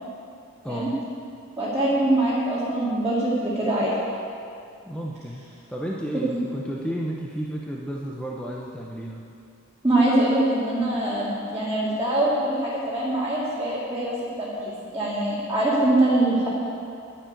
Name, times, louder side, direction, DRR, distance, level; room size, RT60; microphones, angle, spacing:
voice 1, 0.6-1.0 4.8-5.4 5.7-9.2, equal, 5° left, -3 dB, 0.8 m, -32 dB
voice 2, 1.6-3.9 6.3-6.4 9.8-16.5, right 1 dB, 15° right, -10 dB, 2.4 m, -23 dB
11.5 x 7.4 x 9.1 m, 2.6 s
head